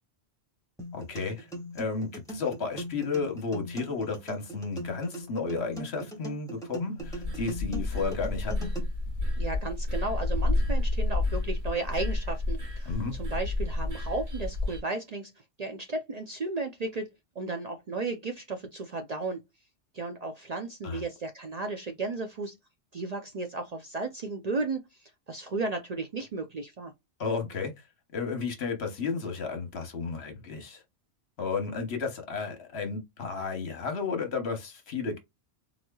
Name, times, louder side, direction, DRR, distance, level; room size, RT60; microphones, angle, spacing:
sound 1, 0.8-8.8, equal, 5° left, 1.6 m, -39 dB
voice 1, 0.9-1.5 1.7-8.7 12.8-13.1 20.8-21.0 27.2-27.7 28.1-30.8 31.4-35.2, left 4 dB, 65° left, 1.2 m, -33 dB
sound 2, 7.0-14.8, left 2 dB, 70° right, 2.1 m, -30 dB
voice 2, 9.4-15.3 15.6-19.4 19.9-22.6 22.9-26.9, right 3 dB, 50° right, 0.5 m, -34 dB
3.8 x 3.0 x 2.2 m
omnidirectional pair, 1.2 m